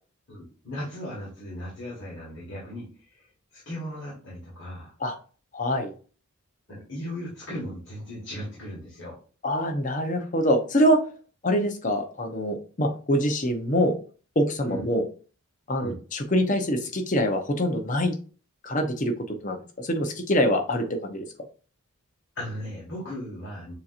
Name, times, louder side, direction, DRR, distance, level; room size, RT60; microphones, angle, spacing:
voice 1, 0.3-2.9 3.1-3.3 3.5-4.9 6.7-9.2 14.6-14.8 15.7-16.0 22.3-23.7, equal, 55° left, -6 dB, 1.5 m, -37 dB
voice 2, 5.5-5.9 9.4-11.0 11.4-14.0 14.4-15.0 15.7-18.1 18.6-21.2, equal, 35° left, 5 dB, 0.8 m, -25 dB
6.9 x 2.8 x 2.5 m, 0.38 s
head